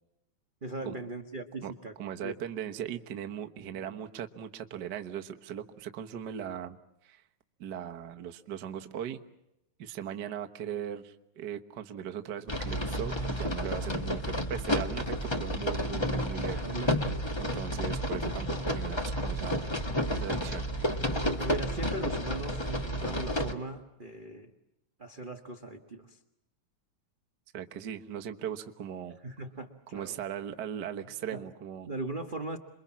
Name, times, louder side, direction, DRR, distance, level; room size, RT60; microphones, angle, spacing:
voice 1, 0.6-1.9 2.2-2.4 3.7-3.9 16.6-17.0 21.2-24.5 25.0-26.2 29.2-30.1 31.3-31.4 31.8-32.6, right 2 dB, 35° right, 4 dB, 0.8 m, -39 dB
voice 2, 2.0-6.8 7.0-7.2 7.6-9.2 9.8-16.6 17.4-19.6 20.1-21.0 27.5-29.2 29.9-31.9, right 9 dB, 50° right, 5 dB, 1.3 m, -39 dB
sound 1, 12.5-23.5, equal, 25° left, 0.6 m, -31 dB
28.0 x 23.0 x 7.4 m, 0.85 s
omnidirectional pair, 3.4 m